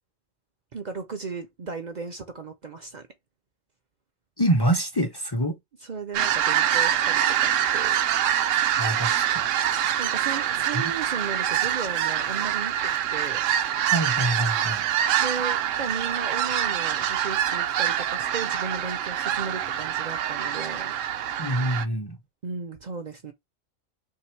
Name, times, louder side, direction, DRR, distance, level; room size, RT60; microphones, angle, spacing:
voice 1, 0.7-3.1 5.8-8.0 10.0-13.4 15.2-20.9 22.4-23.3, right 5 dB, 50° right, 0.6 m, -35 dB
voice 2, 4.4-5.6 8.8-9.5 10.7-10.8 13.9-14.8 21.4-22.2, right 1 dB, 25° left, 0.6 m, -25 dB
sound 1, 6.1-21.9, right 10 dB, 75° right, 0.9 m, -25 dB
3.4 x 2.8 x 4.4 m
omnidirectional pair, 1.4 m